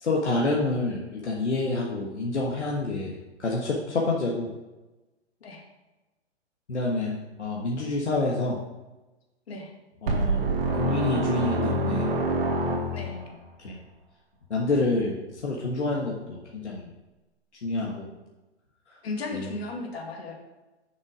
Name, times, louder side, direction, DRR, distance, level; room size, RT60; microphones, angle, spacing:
voice 1, 0.0-4.5 6.7-8.6 10.0-10.5 10.7-12.1 13.0-13.2 13.6-13.8 14.5-15.2 15.4-16.9 17.6-18.1 19.3-19.5, left 2 dB, 85° left, -2 dB, 1.5 m, -28 dB
sound 1, 10.1-13.3, right 2 dB, 55° right, 1.6 m, -26 dB
voice 2, 19.0-20.3, left 3 dB, 65° left, 1 dB, 2.2 m, -35 dB
6.8 x 6.6 x 4.9 m, 1.1 s
hypercardioid pair, 125°, 33 cm